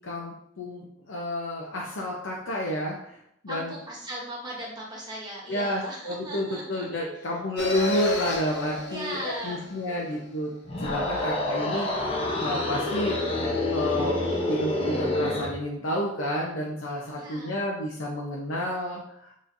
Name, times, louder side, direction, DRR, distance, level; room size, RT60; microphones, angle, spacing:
voice 1, 0.0-3.7 5.5-10.5 10.8-13.2 13.7-19.3, equal, 85° left, -3 dB, 0.8 m, -30 dB
voice 2, 3.5-7.0 8.9-9.6 9.9-10.2 11.1-12.0 17.1-17.6, right 1 dB, 20° right, -4 dB, 1.2 m, -38 dB
sound 1, 7.6-10.1, left 3 dB, 65° left, 1.0 m, -31 dB
sound 2, 10.6-15.6, left 2 dB, 30° left, 0.8 m, -28 dB
5.9 x 3.2 x 2.7 m, 0.72 s
head